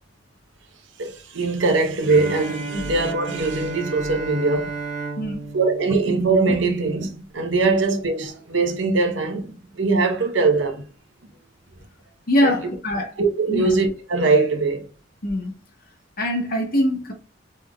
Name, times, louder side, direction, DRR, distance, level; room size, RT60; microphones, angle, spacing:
voice 1, 1.0-4.7 5.5-9.5 9.7-10.8 12.4-12.6 13.2-14.9, right 3 dB, 70° right, 0.9 m, -21 dB
Bowed string instrument, 2.1-7.0, right 4 dB, 55° right, 1.3 m, -33 dB
voice 2, 5.2-5.5 12.3-13.2 13.5-13.7 15.2-15.5 16.2-17.1, equal, 50° left, 0.9 m, -23 dB
3.7 x 3.3 x 2.3 m
head